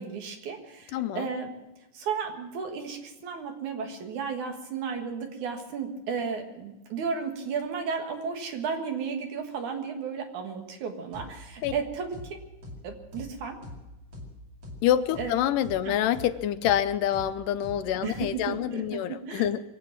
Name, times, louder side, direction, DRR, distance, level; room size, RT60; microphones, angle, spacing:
voice 1, 0.0-1.5 1.9-12.4 12.8-13.6 15.2-15.3 15.8-15.9 18.0-19.5, right 6 dB, 70° right, 4 dB, 2.9 m, -34 dB
voice 2, 0.9-1.3 11.6-11.7 14.8-19.6, left 11 dB, 85° left, 11 dB, 2.3 m, -26 dB
sound 1, 11.1-11.3 11.6-11.8 12.1-12.3 12.6-12.8 13.1-13.3 13.6-13.8 14.1-14.3 14.6-14.8 15.1-15.3 15.6-15.8 16.1-16.3 16.6-16.8 17.1-17.3 17.6-17.8 18.1-18.3, left 1 dB, 45° right, 3.1 m, -41 dB
23.0 x 8.5 x 7.4 m, 0.98 s
omnidirectional pair, 3.7 m